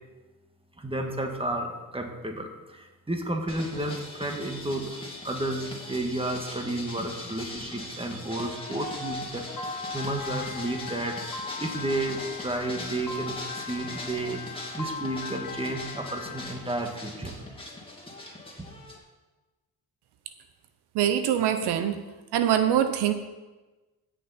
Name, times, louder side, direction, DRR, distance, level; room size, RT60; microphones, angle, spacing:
voice 1, 0.8-4.9 5.2-17.3 18.6-18.7, right 1 dB, 15° right, 3 dB, 1.9 m, -32 dB
sound 1, 3.5-19.0, left 2 dB, 15° left, 2.4 m, -40 dB
Piano, 9.6-16.5, left 5 dB, 60° left, 1.3 m, -40 dB
voice 2, 20.9-22.0 22.3-23.1, right 10 dB, 85° right, 9 dB, 0.8 m, -23 dB
16.0 x 6.8 x 4.3 m, 1.2 s
cardioid pair, 75°, 40 cm